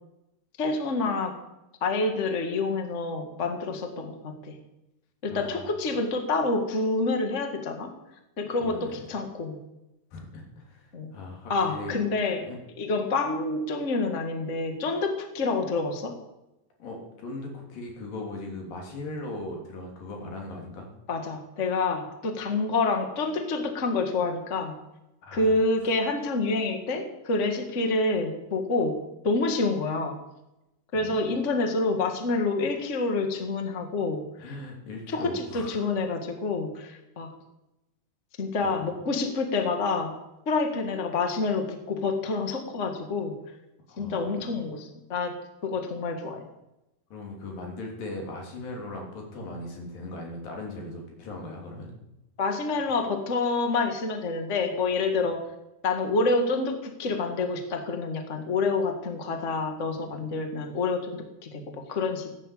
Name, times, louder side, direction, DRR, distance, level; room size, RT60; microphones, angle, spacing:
voice 1, 0.6-1.3 1.8-4.5 5.2-7.9 8.4-9.6 10.9-11.1 11.5-12.4 12.8-16.1 21.1-24.7 25.3-29.0 29.2-30.2 30.9-34.2 35.1-37.3 38.4-40.1 40.4-43.3 44.0-45.3 45.6-46.4 52.4-55.4 55.8-62.3, left 3 dB, 80° left, 5 dB, 0.6 m, -27 dB
voice 2, 5.3-5.7 8.6-9.1 10.1-11.9 12.4-12.6 16.8-20.9 25.2-25.6 30.9-31.2 34.4-35.9 38.6-38.9 43.9-44.3 47.1-51.9 59.9-60.3, left 2 dB, 55° left, 0 dB, 4.6 m, -39 dB
15.5 x 10.0 x 8.5 m, 0.94 s
omnidirectional pair, 4.9 m